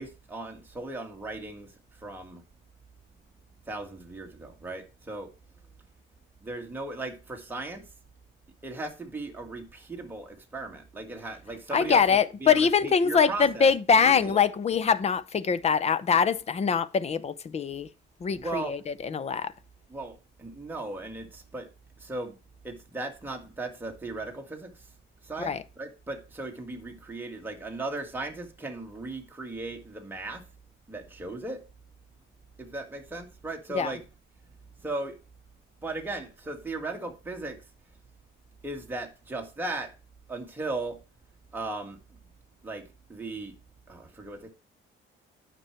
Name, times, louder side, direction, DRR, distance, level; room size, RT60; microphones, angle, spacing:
voice 1, 0.0-1.7 2.0-2.4 3.7-5.3 6.4-7.8 8.6-14.4 18.3-18.8 19.9-21.7 22.0-22.3 22.6-24.7 25.2-30.4 30.9-31.6 32.6-34.0 34.8-35.2 35.8-37.6 38.6-39.9 40.3-41.0 41.5-42.0 42.6-42.8 43.1-43.5 43.9-44.5, right 2 dB, 10° right, 1.9 m, -37 dB
voice 2, 11.7-17.9 18.2-19.5 25.4-25.6 33.7-33.9, left 6 dB, 30° left, 0.7 m, -23 dB
9.6 x 6.1 x 4.5 m
cardioid pair, 150°, 21 cm